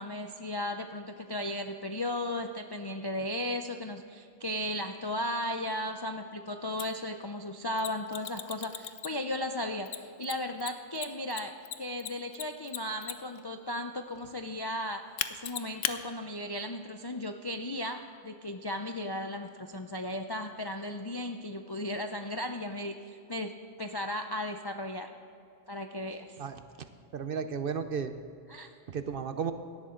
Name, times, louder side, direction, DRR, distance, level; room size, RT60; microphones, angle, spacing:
voice 1, 0.0-15.0 15.4-23.5 23.8-25.1 25.7-26.4 28.5-28.7, left 1 dB, 40° left, 5 dB, 0.3 m, -35 dB
Mechanisms, 6.8-6.9 7.8-9.3 9.9-13.4 15.2-16.0, left 11 dB, 80° left, 1.0 m, -36 dB
voice 2, 26.4-28.1 28.9-29.5, right 6 dB, 55° right, 10 dB, 0.8 m, -34 dB
17.0 x 12.0 x 3.8 m, 2.6 s
omnidirectional pair, 1.3 m